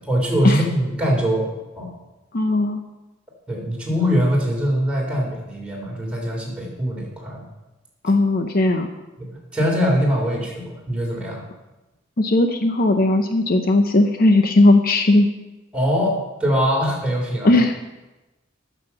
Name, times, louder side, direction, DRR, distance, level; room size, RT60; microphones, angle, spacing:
voice 1, 0.0-1.5 1.8-1.9 3.5-7.5 9.2-11.4 15.7-17.5, equal, 5° right, -3 dB, 3.2 m, -22 dB
voice 2, 2.3-2.8 8.0-8.9 12.2-15.3 17.4-17.8, left 2 dB, 50° left, 6 dB, 0.7 m, -17 dB
9.3 x 7.3 x 6.9 m, 1.0 s
head